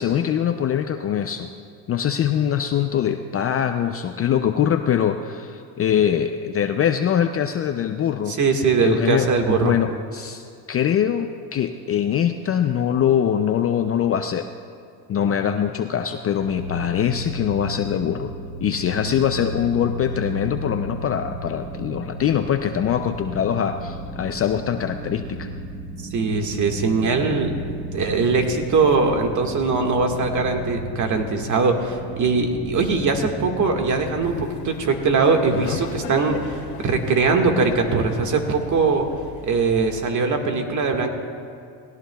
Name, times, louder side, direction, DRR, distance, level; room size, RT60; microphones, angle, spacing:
voice 1, 0.0-1.5 1.9-8.4 8.8-9.3 9.6-14.5 15.1-18.3 18.6-25.5 35.5-35.8, left 9 dB, 30° left, 7 dB, 0.5 m, -23 dB
voice 2, 8.3-9.8 19.0-19.2 26.1-27.6 27.9-39.1 39.4-41.1, right 4 dB, 40° right, 4 dB, 1.8 m, -21 dB
sound 1, 16.4-34.4, right 1 dB, 80° right, 1.5 m, -34 dB
Laughter, 34.2-40.0, left 6 dB, 90° left, 2.2 m, -39 dB
20.0 x 17.0 x 2.3 m, 2.4 s
supercardioid pair, 100°, 48 cm